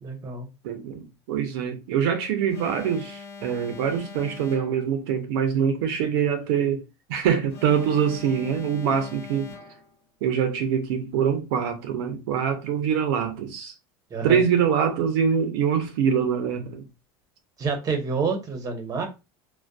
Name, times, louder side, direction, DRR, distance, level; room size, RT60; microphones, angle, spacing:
voice 1, 0.0-0.5 14.1-14.4 17.6-19.1, right 4 dB, 30° right, 0.8 m, -28 dB
voice 2, 0.6-6.8 7.1-9.5 10.2-13.7 14.2-16.8, right 7 dB, 80° right, 0.6 m, -24 dB
Alarm, 2.5-5.0 7.5-10.0, left 4 dB, 65° left, 1.1 m, -43 dB
2.5 x 2.2 x 2.2 m
supercardioid pair, 115°, 12 cm